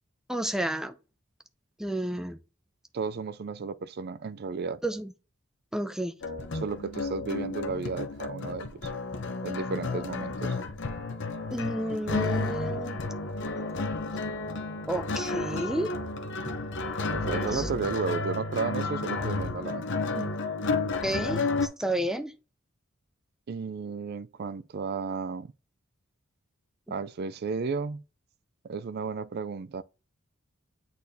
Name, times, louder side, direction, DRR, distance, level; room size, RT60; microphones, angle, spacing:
voice 1, 0.3-0.9 1.8-2.4 4.8-5.1 5.7-6.1 11.5-13.0 13.5-13.7 14.9-15.9 16.4-16.6 17.5-17.7 21.0-22.3, right 1 dB, 5° right, 0.5 m, -31 dB
voice 2, 2.9-4.8 6.5-8.9 9.4-10.6 17.1-19.9 20.1-20.3 23.5-25.5 26.9-28.0 28.6-29.8, right 5 dB, 50° right, 0.4 m, -33 dB
sound 1, 6.2-21.7, left 3 dB, 60° left, 0.8 m, -32 dB
8.4 x 4.2 x 2.8 m
head